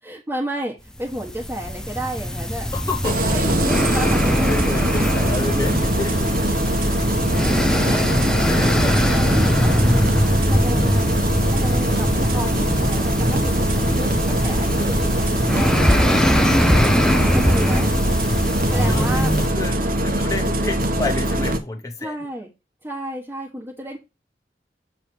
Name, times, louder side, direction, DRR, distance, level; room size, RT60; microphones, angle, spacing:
voice 1, 0.0-2.7 3.3-5.0 6.4-6.7 7.9-10.1 10.5-11.2 11.5-17.9 18.7-19.3 22.0-22.5 22.8-24.0, right 1 dB, 15° right, -3 dB, 1.3 m, -32 dB
sound 1, 1.0-19.5, equal, 5° left, 0.6 m, -21 dB
voice 2, 2.7-3.5 3.9-4.2 4.5-6.4 8.4-9.0 10.9-11.2 16.8-17.8 18.7-19.2 19.5-22.1, left 3 dB, 20° left, 1 dB, 0.9 m, -31 dB
Engine starting, 3.0-21.6, right 1 dB, 50° right, 1.0 m, -22 dB
7.3 x 3.3 x 4.5 m, 0.25 s
head